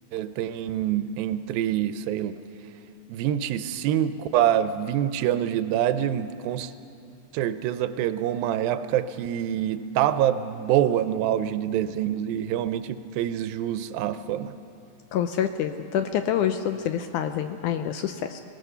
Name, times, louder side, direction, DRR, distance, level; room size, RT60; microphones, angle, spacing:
voice 1, 0.1-2.3 3.1-6.7 7.3-14.5, right 11 dB, 85° right, 11 dB, 2.3 m, -26 dB
voice 2, 15.1-18.4, left 9 dB, 80° left, 8 dB, 1.8 m, -27 dB
24.5 x 17.5 x 6.7 m, 2.7 s
omnidirectional pair, 4.1 m